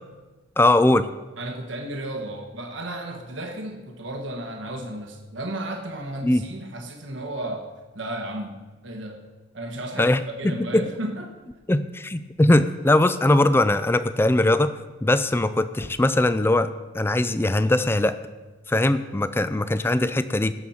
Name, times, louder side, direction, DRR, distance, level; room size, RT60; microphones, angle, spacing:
voice 1, 0.6-1.1 6.2-6.4 10.0-10.2 10.7-10.8 11.7-14.7 15.0-18.2 18.7-20.5, left 1 dB, 10° left, 13 dB, 0.4 m, -20 dB
voice 2, 1.4-7.7 7.9-9.3 9.5-11.4, right 1 dB, 85° right, 2 dB, 1.3 m, -33 dB
18.0 x 7.1 x 4.3 m, 1.2 s
head